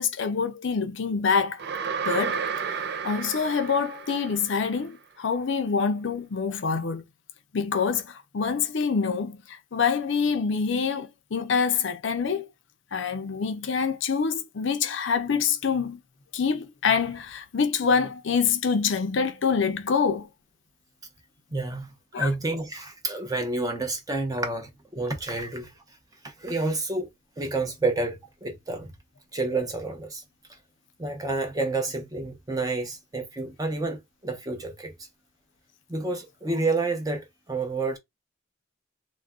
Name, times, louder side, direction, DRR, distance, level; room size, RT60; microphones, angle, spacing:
voice 1, 0.0-1.6 2.0-2.4 2.6-2.7 3.0-7.0 7.5-12.5 12.9-16.0 16.3-20.3 22.1-22.3, left 5 dB, 65° left, 0.5 m, -26 dB
sound 1, 1.6-4.7, right 6 dB, 55° right, 0.4 m, -32 dB
voice 2, 21.5-21.9 22.2-25.7 26.2-27.1 27.4-28.9 29.3-30.2 31.0-34.9 35.9-38.0, right 3 dB, 20° right, 0.7 m, -29 dB
2.4 x 2.1 x 3.5 m
head